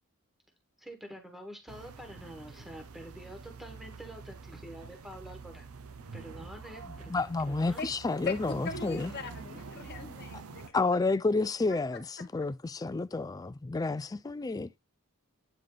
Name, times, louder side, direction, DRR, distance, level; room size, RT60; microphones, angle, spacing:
voice 1, 0.8-5.7 6.1-7.8 9.1-9.3, equal, ahead, 1.3 m, -47 dB
sound 1, 1.7-10.7, right 4 dB, 80° right, 0.7 m, -46 dB
sound 2, 6.4-11.5, right 5 dB, 55° right, 1.1 m, -59 dB
voice 2, 7.1-9.1 10.7-14.7, left 3 dB, 15° left, 0.3 m, -30 dB
voice 3, 8.2-10.8 11.4-11.8 12.2-12.3, left 4 dB, 50° left, 1.4 m, -41 dB
9.0 x 3.4 x 3.8 m
head